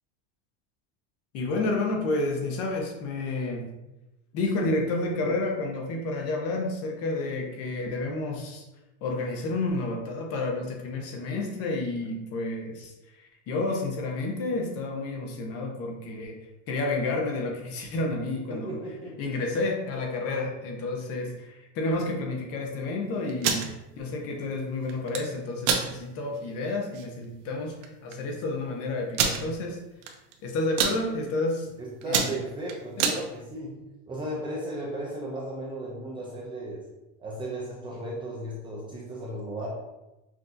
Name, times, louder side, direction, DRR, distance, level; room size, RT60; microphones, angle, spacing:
voice 1, 1.3-3.6 4.3-8.7 9.0-16.4 16.7-18.8 19.2-23.7 24.0-27.8 28.0-29.8 30.4-31.7 32.1-32.4 33.0-33.1, left 2 dB, 45° left, 1 dB, 0.8 m, -30 dB
voice 2, 18.5-19.3 31.8-33.8 34.1-36.8 37.2-39.8, right 1 dB, 15° right, -4 dB, 0.4 m, -35 dB
sound 1, 23.3-23.7 24.9-25.2 25.6-25.9 26.4-26.5 26.8-27.0 27.8-27.9 28.1-28.2 29.1-29.4 30.0-30.3 30.6-31.0 31.5-31.7 32.0-33.2, right 6 dB, 80° right, 0.7 m, -25 dB
5.9 x 2.7 x 2.6 m, 0.99 s
cardioid pair, 160°, 35 cm